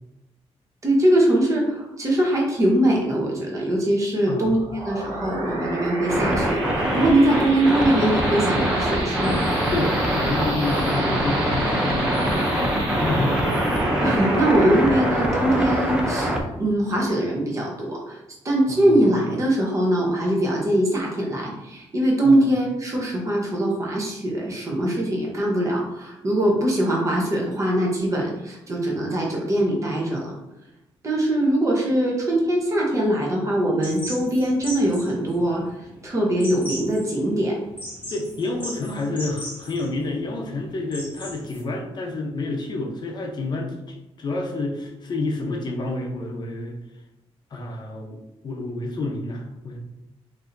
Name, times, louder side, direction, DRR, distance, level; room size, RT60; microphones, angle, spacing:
voice 1, 0.8-4.6 4.8-9.4 14.0-18.2 18.4-30.3 31.0-35.6 36.0-37.6, right 1 dB, 30° right, -2 dB, 0.9 m, -22 dB
voice 2, 4.2-4.6 9.7-13.5 18.7-19.2 22.2-22.5 38.1-46.8 47.5-49.8, left 2 dB, 40° left, 1 dB, 0.7 m, -29 dB
sound 1, 4.4-17.5, right 1 dB, 60° right, 1.2 m, -30 dB
sound 2, 6.1-16.4, equal, 10° right, 0.5 m, -24 dB
sound 3, 33.8-41.6, equal, 15° left, 1.3 m, -38 dB
4.8 x 2.7 x 2.6 m, 0.91 s
wide cardioid pair, 165°, 11 cm